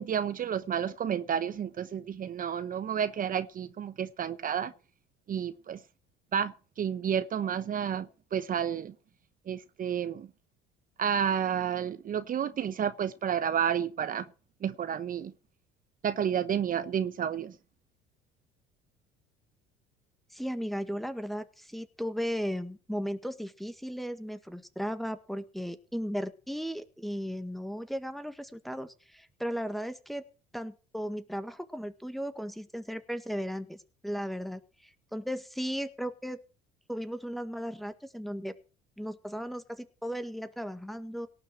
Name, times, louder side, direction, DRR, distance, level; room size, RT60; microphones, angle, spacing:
voice 1, 0.0-4.7 5.3-5.8 6.3-8.9 9.5-10.3 11.0-14.3 14.6-15.3 16.0-17.5, right 8 dB, 40° right, 1.0 m, -31 dB
voice 2, 20.3-30.2 30.5-36.4 36.9-38.5 39.0-41.3, equal, ahead, 1.8 m, -36 dB
18.0 x 6.4 x 7.6 m
supercardioid pair, 80°, 21 cm